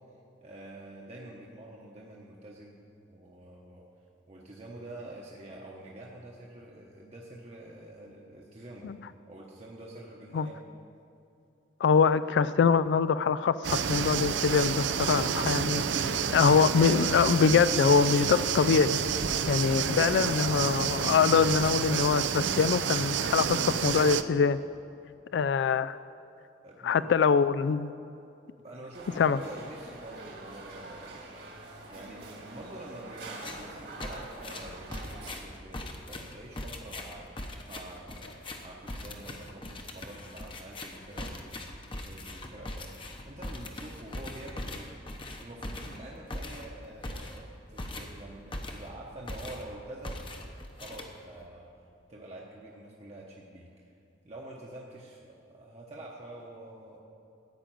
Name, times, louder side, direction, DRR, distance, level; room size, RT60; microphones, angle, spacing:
voice 1, 0.4-2.8 3.1-3.8 4.3-8.9 9.3-10.6 26.6-27.1 28.6-31.5 31.9-44.9 45.4-50.5 50.8-51.7 52.1-53.9 54.2-57.0, right 1 dB, 35° right, -3 dB, 1.0 m, -47 dB
voice 2, 11.8-15.8 16.3-19.0 19.5-24.6 25.3-26.0 26.8-27.9 29.2-29.4, left 6 dB, 70° left, 14 dB, 0.3 m, -24 dB
sound 1, 13.6-24.2, right 7 dB, 80° right, 0.5 m, -29 dB
sound 2, 28.9-35.3, right 2 dB, 60° right, 1.9 m, -45 dB
sound 3, 33.3-33.7 34.0-49.0 49.3-49.7 50.0-51.5, left 1 dB, 30° left, 0.9 m, -41 dB
13.5 x 5.2 x 9.0 m, 2.7 s
head